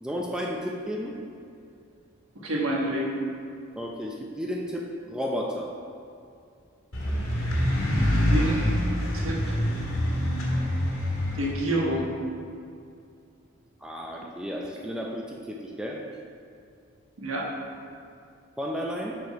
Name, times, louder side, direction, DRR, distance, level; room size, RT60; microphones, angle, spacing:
voice 1, 0.0-1.2 3.8-5.7 13.8-16.1 18.6-19.2, equal, 5° right, -2 dB, 0.4 m, -33 dB
voice 2, 2.4-3.1 8.1-8.8 9.1-9.5 11.3-12.1 17.2-17.5, right 1 dB, 80° right, -2 dB, 1.3 m, -28 dB
sound 1, 6.9-11.5, equal, 90° left, 1.5 m, -25 dB
6.7 x 4.5 x 5.2 m, 2.4 s
head